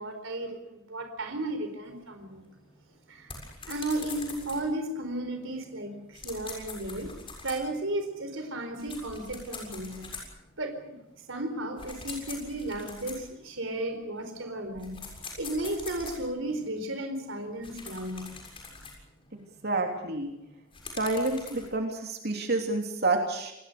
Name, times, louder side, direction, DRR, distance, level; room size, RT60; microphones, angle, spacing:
voice 1, 0.0-2.4 3.1-3.3 3.7-7.1 7.4-10.1 10.6-11.0 11.3-15.1 15.4-18.3, right 1 dB, 65° right, 6 dB, 4.5 m, -34 dB
sound 1, 1.8-13.6 14.2-16.6 17.2-21.7, left 4 dB, 25° left, 7.1 m, -45 dB
voice 2, 19.3-20.3 21.0-23.5, right 2 dB, 50° right, 3 dB, 3.2 m, -29 dB
28.0 x 21.0 x 6.8 m, 0.86 s
head